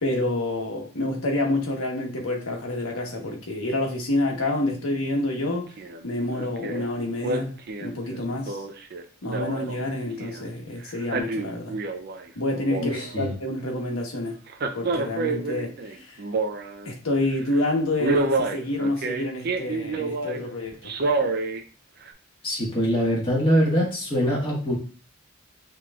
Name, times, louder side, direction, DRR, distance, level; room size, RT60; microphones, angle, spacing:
voice 1, 0.0-5.7 6.0-8.6 9.2-11.8 12.4-14.4 14.7-16.2 16.8-20.8, left 1 dB, 85° left, 1 dB, 1.2 m, -28 dB
Male speech man speaking, 5.8-6.0 6.3-6.8 7.2-10.4 10.9-12.2 12.5-13.3 14.5-16.9 17.3-17.5 18.0-20.4 20.8-21.6 22.1-22.2, right 3 dB, 45° right, 0.4 m, -28 dB
voice 2, 12.8-13.3 22.4-24.7, equal, 25° left, -5 dB, 1.6 m, -23 dB
5.8 x 3.0 x 2.4 m, 0.38 s
head